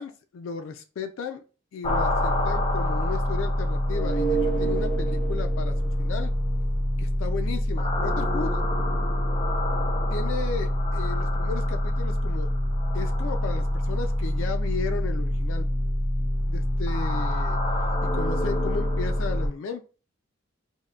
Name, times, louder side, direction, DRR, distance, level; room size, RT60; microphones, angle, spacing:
voice 1, 0.0-1.4 1.7-6.3 7.0-8.6 10.1-12.5 12.9-15.7 16.5-17.6 18.0-19.8, left 5 dB, 85° left, 6 dB, 0.3 m, -35 dB
sound 1, 1.8-19.5, equal, 30° left, 0.6 m, -25 dB
3.5 x 2.1 x 2.3 m, 0.35 s
head